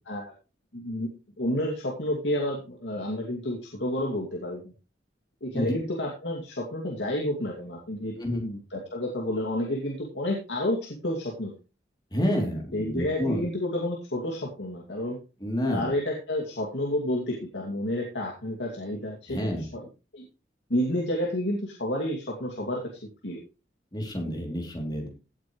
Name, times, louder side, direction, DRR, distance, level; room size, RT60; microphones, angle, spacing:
voice 1, 0.7-1.1 1.4-4.7 5.4-11.5 12.7-15.2 15.7-19.8 20.1-20.3 20.7-22.8 23.2-23.4, left 1 dB, 90° left, -1 dB, 2.5 m, -30 dB
voice 2, 8.1-8.5 12.1-13.5 15.4-15.9 19.3-19.6 23.9-25.1, equal, 25° left, 1 dB, 3.1 m, -29 dB
16.5 x 8.7 x 3.2 m, 0.31 s
head